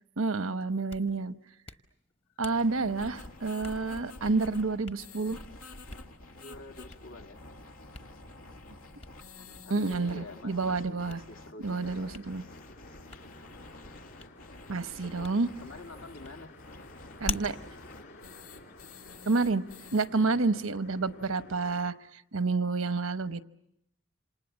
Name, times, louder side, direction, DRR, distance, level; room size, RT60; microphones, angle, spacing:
voice 1, 0.2-1.3 2.4-5.4 9.7-11.2 11.6-12.4 14.7-15.5 17.2-17.6 19.3-19.6 19.9-23.4, right 3 dB, 80° right, 12 dB, 1.0 m, -29 dB
Hands, 0.7-19.2, left 3 dB, 30° left, 1.0 m, -47 dB
sound 1, 2.5-20.1, left 2 dB, 90° left, 2.2 m, -49 dB
voice 2, 6.3-7.4 9.3-12.2 15.0-16.6 20.1-20.4, left 2 dB, 75° left, 3 dB, 2.2 m, -48 dB
sound 2, 11.6-21.9, left 2 dB, 50° left, 3.1 m, -53 dB
27.5 x 27.0 x 7.3 m, 0.79 s
head